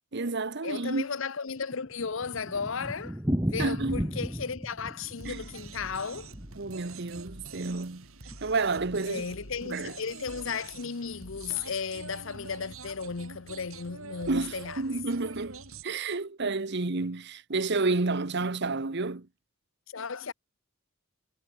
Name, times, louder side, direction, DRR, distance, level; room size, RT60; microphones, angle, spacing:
voice 1, 0.1-1.1 3.3-4.1 5.2-5.4 6.6-8.1 8.4-9.2 9.6-9.9 14.3-19.3, right 3 dB, 55° right, 1.0 m, -30 dB
voice 2, 0.6-6.3 9.0-14.8 19.9-20.3, left 5 dB, 60° left, 0.8 m, -35 dB
Thunder, 1.4-7.6 7.9-8.0 8.3-8.4 8.6-8.7 9.3-9.6, equal, 10° right, 1.7 m, -35 dB
sound 1, 5.2-15.8, right 3 dB, 75° right, 6.1 m, -46 dB
head